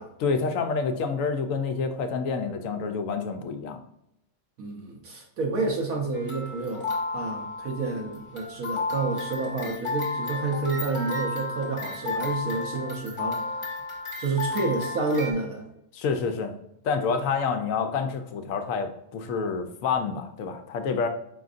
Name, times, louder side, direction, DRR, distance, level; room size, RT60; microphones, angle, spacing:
voice 1, 0.2-3.8 15.9-16.5 16.8-21.1, left 5 dB, 70° left, 7 dB, 0.9 m, -28 dB
voice 2, 4.6-13.6 14.2-15.7, right 3 dB, 75° right, 0 dB, 1.2 m, -29 dB
sound 1, 6.1-15.3, left 3 dB, 25° left, 1.0 m, -33 dB
5.0 x 3.7 x 2.4 m, 0.79 s
omnidirectional pair, 1.5 m